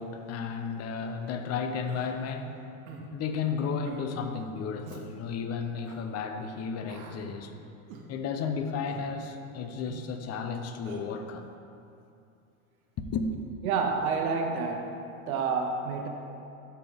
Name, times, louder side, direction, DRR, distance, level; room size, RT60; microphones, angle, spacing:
voice 1, 0.0-2.6 3.1-7.5 8.1-11.5 13.1-13.3, left 5 dB, 35° left, 6 dB, 0.8 m, -33 dB
Human voice, 1.9-2.1 2.9-3.1 3.8-4.0 4.8-5.0 5.8-6.0 6.9-7.2 7.9-8.1 8.9-9.1 9.9-10.1 10.8-11.0, right 5 dB, 60° right, 1.2 m, -46 dB
voice 2, 13.6-15.0 15.3-16.1, right 5 dB, 75° right, 3 dB, 0.9 m, -28 dB
13.0 x 4.5 x 3.6 m, 2.6 s
hypercardioid pair, 100°, 43 cm